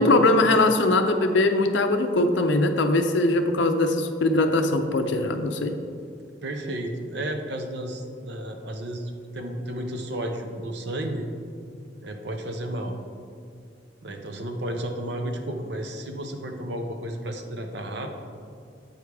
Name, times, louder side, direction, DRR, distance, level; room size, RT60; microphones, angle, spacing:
voice 1, 0.0-5.7, left 2 dB, 75° left, 7 dB, 0.5 m, -21 dB
voice 2, 6.4-11.3 12.0-12.9 14.0-18.1, right 1 dB, 65° right, 4 dB, 0.7 m, -32 dB
8.1 x 3.5 x 4.8 m, 2.3 s
head